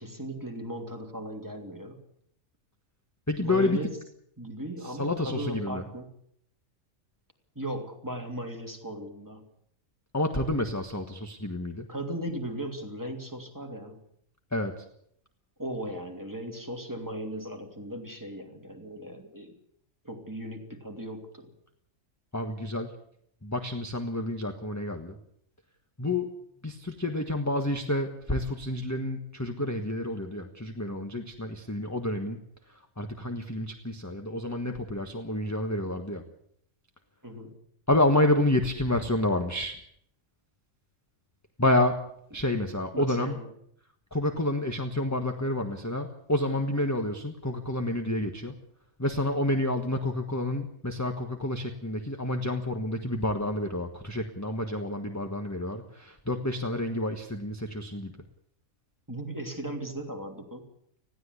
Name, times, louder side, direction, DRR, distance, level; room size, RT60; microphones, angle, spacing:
voice 1, 0.0-2.0 3.4-4.0 4.4-6.1 7.5-9.5 11.9-14.0 15.6-19.5 20.0-21.5 37.2-37.6 42.9-43.5 59.1-60.7, right 1 dB, 15° right, 2 dB, 3.0 m, -37 dB
voice 2, 3.3-3.8 5.0-5.8 10.1-11.9 14.5-14.8 22.3-22.9 23.4-25.2 26.0-26.4 26.6-32.4 33.0-36.2 37.9-39.8 41.6-42.0 42.3-43.4 44.1-48.5 49.0-58.1, left 1 dB, 15° left, 5 dB, 1.4 m, -29 dB
20.0 x 15.5 x 8.2 m, 0.68 s
omnidirectional pair, 1.3 m